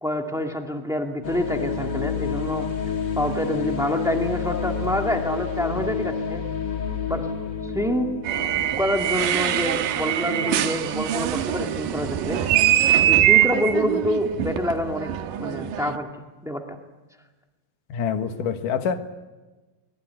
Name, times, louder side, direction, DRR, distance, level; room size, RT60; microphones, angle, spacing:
voice 1, 0.0-2.6 3.1-6.4 7.1-7.2 7.6-8.1 8.8-12.8 13.1-15.1 15.4-16.1 16.4-16.6, left 1 dB, 5° right, 0.4 m, -27 dB
sound 1, 1.2-10.0, left 6 dB, 35° left, 2.2 m, -29 dB
sound 2, 8.2-16.0, right 12 dB, 70° right, 2.5 m, -23 dB
voice 2, 17.9-19.0, left 7 dB, 65° left, 2.9 m, -26 dB
21.5 x 21.5 x 9.6 m
omnidirectional pair, 4.3 m